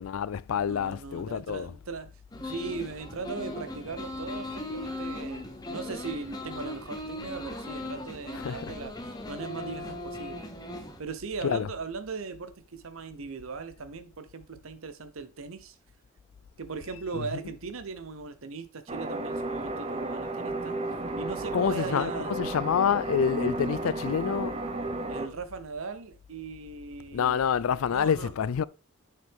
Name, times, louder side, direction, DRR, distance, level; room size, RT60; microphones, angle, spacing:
voice 1, 0.0-1.7 8.3-8.7 11.4-11.7 17.1-17.3 21.5-24.6 27.1-28.6, left 8 dB, 80° left, 0.4 m, -27 dB
voice 2, 0.6-2.1 2.4-8.9 9.3-10.6 11.0-15.8 16.6-20.7 21.2-22.3 25.1-28.3, right 4 dB, 75° right, 0.8 m, -39 dB
sound 1, 2.3-11.0, left 2 dB, 20° left, 0.9 m, -38 dB
sound 2, 18.9-25.3, right 2 dB, 30° right, 0.8 m, -33 dB
7.6 x 5.9 x 3.5 m
head